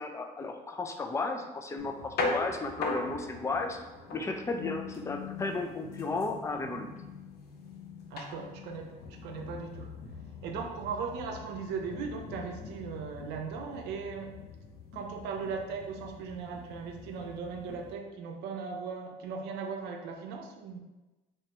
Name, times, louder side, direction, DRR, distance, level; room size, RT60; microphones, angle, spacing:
voice 1, 0.0-3.8 4.1-6.9, left 3 dB, 15° left, 5 dB, 0.4 m, -34 dB
sound 1, 1.8-17.9, left 3 dB, 70° left, 0.6 m, -41 dB
voice 2, 8.1-9.0 9.2-9.9 10.4-14.4 14.9-20.8, right 5 dB, 85° right, 2 dB, 0.5 m, -38 dB
3.2 x 3.1 x 2.9 m, 1.1 s
cardioid pair, 110°, 17 cm